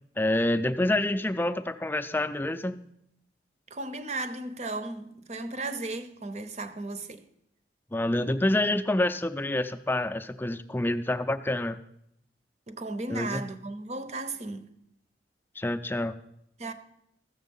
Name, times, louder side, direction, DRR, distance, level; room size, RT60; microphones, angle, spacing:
voice 1, 0.2-2.9 7.9-11.8 13.1-13.4 15.6-16.1, left 1 dB, 10° left, 0.5 m, -27 dB
voice 2, 3.7-7.2 12.7-14.7 16.6-16.7, right 2 dB, 40° right, 0.8 m, -35 dB
14.0 x 7.2 x 5.5 m
head